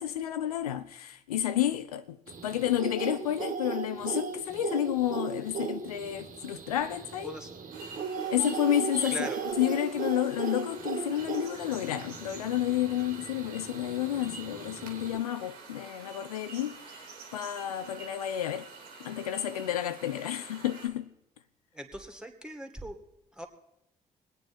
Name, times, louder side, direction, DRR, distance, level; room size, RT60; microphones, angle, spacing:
voice 1, 0.0-7.3 8.3-9.3 9.6-17.1 17.3-18.7 19.0-21.1, left 11 dB, 80° left, 0.4 m, -30 dB
sound 1, 2.3-15.2, right 6 dB, 45° right, 1.8 m, -37 dB
sound 2, 7.7-20.9, right 4 dB, 80° right, 2.2 m, -48 dB
voice 2, 21.7-23.0 23.4-23.5, right 1 dB, 5° right, 2.3 m, -40 dB
22.5 x 9.1 x 4.3 m
figure-of-eight pair, 45°, 19 cm